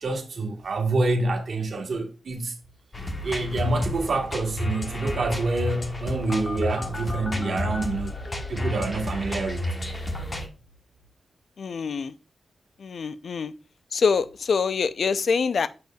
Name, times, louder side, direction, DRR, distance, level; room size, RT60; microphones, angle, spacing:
voice 1, 0.0-2.5 3.2-8.2 8.5-9.7, right 2 dB, 70° right, 1.4 m, -27 dB
sound 1, 2.9-10.5, left 1 dB, 30° left, 1.3 m, -31 dB
voice 2, 11.6-12.1 12.8-13.5 13.9-15.7, left 5 dB, 75° left, 0.4 m, -25 dB
6.8 x 6.4 x 2.3 m
cardioid pair, 60°, 0 cm